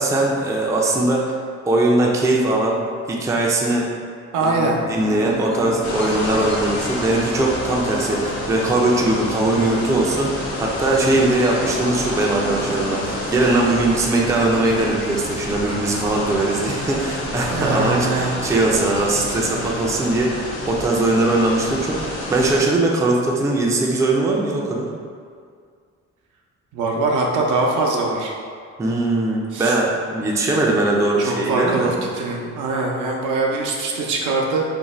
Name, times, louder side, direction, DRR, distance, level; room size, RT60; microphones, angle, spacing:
voice 1, 0.0-1.4 1.6-2.8 3.1-3.9 4.4-24.9 28.8-31.9, right 2 dB, 10° right, -2 dB, 0.3 m, -20 dB
voice 2, 4.3-4.8 17.5-18.3 26.7-28.3 29.5-29.7 31.2-34.6, right 3 dB, 80° right, -1 dB, 0.6 m, -22 dB
sound 1, 4.9-21.1, left 1 dB, 40° left, 0.6 m, -35 dB
sound 2, 5.8-22.6, left 1 dB, 75° left, 0.7 m, -29 dB
2.6 x 2.1 x 3.0 m, 2.1 s
cardioid pair, 90°, 30 cm